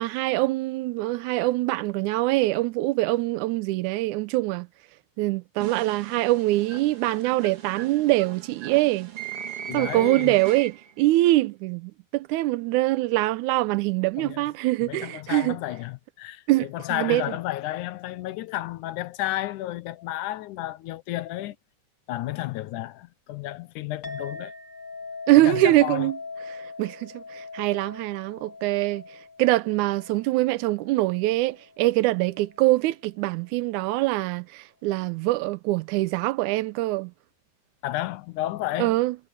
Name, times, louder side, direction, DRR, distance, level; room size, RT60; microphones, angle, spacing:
voice 1, 0.0-4.7 5.2-9.1 9.7-15.6 16.5-17.3 25.3-26.2 26.5-29.0 29.4-37.1 38.8-39.2, right 18 dB, 80° right, 2.1 m, -24 dB
sound 1, 5.6-11.0, right 9 dB, 50° right, 2.6 m, -38 dB
voice 2, 9.7-10.4 14.2-14.5 14.8-21.6 22.1-24.5 25.4-26.1 37.8-39.0, left 15 dB, 90° left, 2.3 m, -32 dB
Chink clink, 24.0-32.7, left 4 dB, 35° left, 3.2 m, -42 dB
omnidirectional pair, 3.5 m